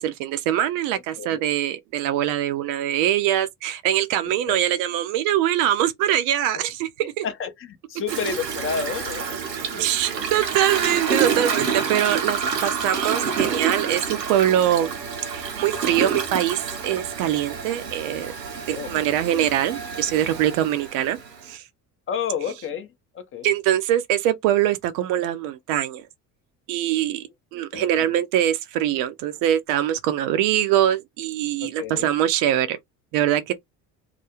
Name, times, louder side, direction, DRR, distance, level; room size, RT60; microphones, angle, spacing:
voice 1, 0.0-7.2 9.8-15.0 15.3-18.3 18.7-21.2 21.5-21.6 23.4-26.0 26.7-27.2 27.5-32.8 33.1-33.5, right 11 dB, 45° right, 0.5 m, -23 dB
voice 2, 7.2-9.8 10.7-10.8 15.9-16.2 18.7-19.5 22.1-23.5 27.7-28.1 31.6-32.1, left 6 dB, 25° left, 0.5 m, -31 dB
Toilet flush, 8.1-21.5, right 6 dB, 85° right, 0.7 m, -28 dB
2.4 x 2.3 x 2.9 m
figure-of-eight pair, 55°, 49 cm